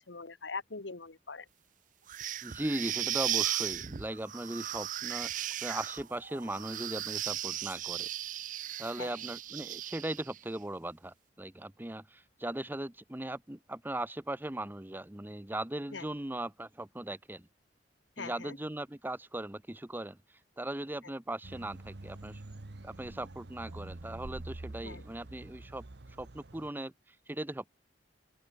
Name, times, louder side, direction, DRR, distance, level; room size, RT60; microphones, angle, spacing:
voice 1, 0.1-1.4 9.0-9.1 15.9-16.0 18.2-18.6 24.8-25.0, left 4 dB, 90° left, 1.6 m, -42 dB
sound 1, 2.1-10.4, right 12 dB, 45° right, 0.5 m, -36 dB
voice 2, 2.4-8.1 8.8-17.5 18.2-20.2 20.6-22.4 22.8-25.9 26.2-27.7, right 1 dB, 10° right, 0.8 m, -38 dB
sound 2, 21.4-26.7, right 2 dB, 65° right, 1.2 m, -46 dB
open air
head